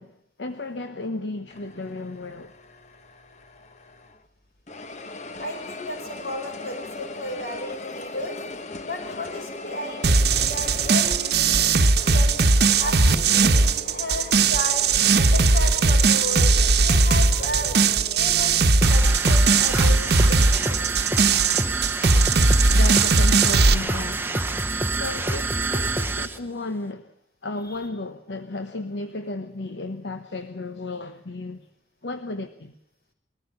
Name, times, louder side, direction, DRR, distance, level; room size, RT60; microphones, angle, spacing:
voice 1, 0.0-2.5 22.7-24.3 24.9-27.1 27.4-31.7 32.0-32.7, left 2 dB, 80° left, 1.1 m, -34 dB
sound 1, 1.5-4.3 4.7-20.9, left 2 dB, 40° left, 1.0 m, -40 dB
voice 2, 5.4-8.4 8.8-12.4 12.8-14.8 15.1-20.9 22.4-22.8 27.7-27.8, left 1 dB, 60° left, 6.0 m, -34 dB
sound 2, 10.0-23.7, right 4 dB, 65° right, 1.0 m, -19 dB
sound 3, 18.8-26.4, right 2 dB, 10° right, 0.9 m, -27 dB
21.5 x 14.5 x 9.7 m
head